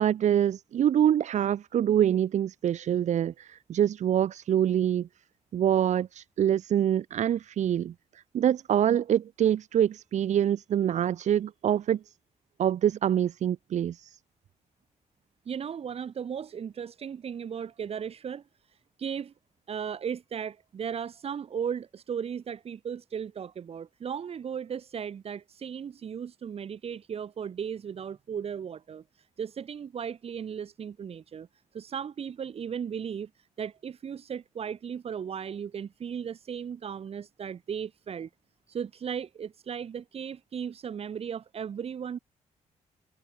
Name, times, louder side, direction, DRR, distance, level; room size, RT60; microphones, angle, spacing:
voice 1, 0.0-5.1 5.5-7.9 8.3-12.0 12.6-14.2, right 10 dB, 70° right, 2.7 m, -25 dB
voice 2, 15.5-19.3 19.7-31.5 31.7-38.3 38.7-42.2, right 7 dB, 55° right, 3.4 m, -36 dB
cardioid pair, 110°, 12 cm